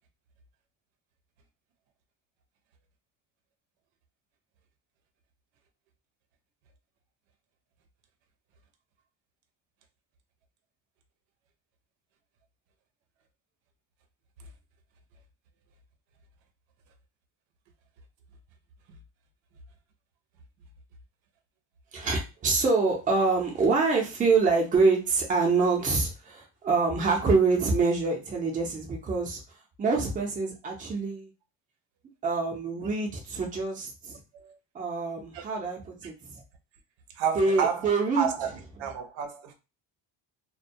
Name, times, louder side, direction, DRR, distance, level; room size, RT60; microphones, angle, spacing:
voice 1, 21.9-29.4 29.8-31.3 32.2-34.2 34.7-36.4 37.3-38.3, right 4 dB, 20° right, 0.5 m, -26 dB
voice 2, 37.1-37.9 38.2-39.5, right 7 dB, 85° right, 0.6 m, -30 dB
2.2 x 2.1 x 2.6 m
cardioid pair, 155°, 44 cm